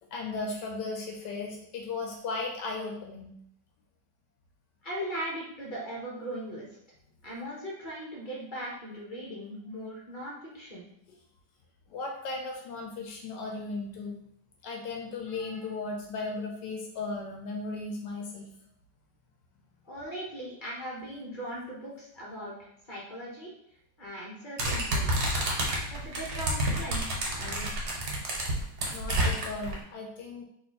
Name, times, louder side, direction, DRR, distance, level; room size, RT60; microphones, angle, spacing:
voice 1, 0.1-3.3 11.9-14.2 14.6-18.5 28.9-30.4, left 3 dB, 75° left, 2 dB, 1.3 m, -36 dB
voice 2, 4.8-6.7 7.2-10.9 19.8-23.5 24.0-25.2 25.9-27.7, equal, 35° left, -4 dB, 1.0 m, -39 dB
sound 1, 24.6-29.7, right 1 dB, 70° right, 1.6 m, -29 dB
3.5 x 3.0 x 4.2 m, 0.73 s
omnidirectional pair, 1.9 m